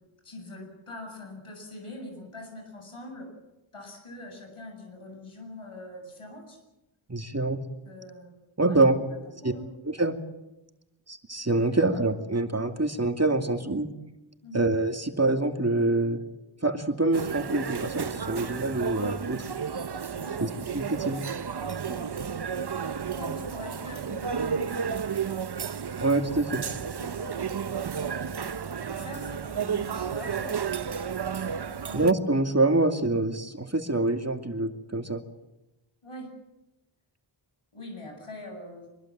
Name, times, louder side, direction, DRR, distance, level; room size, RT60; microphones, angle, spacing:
voice 1, 0.2-3.3 3.7-6.6 7.8-8.3 8.6-9.7 11.7-12.0 14.4-14.6 20.1-20.5 21.8-22.1 23.1-24.9 27.0-27.4 28.2-28.6 28.9-30.6 31.7-32.1 36.0-36.3 37.7-38.9, left 1 dB, 90° left, 4 dB, 7.9 m, -43 dB
voice 2, 7.1-7.6 8.6-8.9 9.4-9.5 9.8-10.1 11.1-13.9 14.5-16.2 16.6-19.4 20.4-21.2 26.0-26.6 31.9-35.2, right 2 dB, 30° right, 5 dB, 2.6 m, -25 dB
sound 1, 17.1-32.1, right 7 dB, 55° right, 0.8 m, -32 dB
24.5 x 22.5 x 7.6 m, 0.95 s
wide cardioid pair, 50°, 49 cm